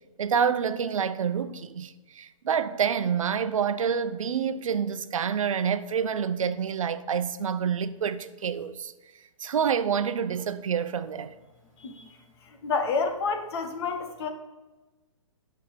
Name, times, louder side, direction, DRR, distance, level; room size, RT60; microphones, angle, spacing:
voice 1, 0.2-8.9 9.4-11.3, right 7 dB, 75° right, 0.7 m, -27 dB
voice 2, 12.6-14.3, left 4 dB, 50° left, 1.4 m, -28 dB
8.6 x 6.5 x 5.2 m
hypercardioid pair, 145°, 17 cm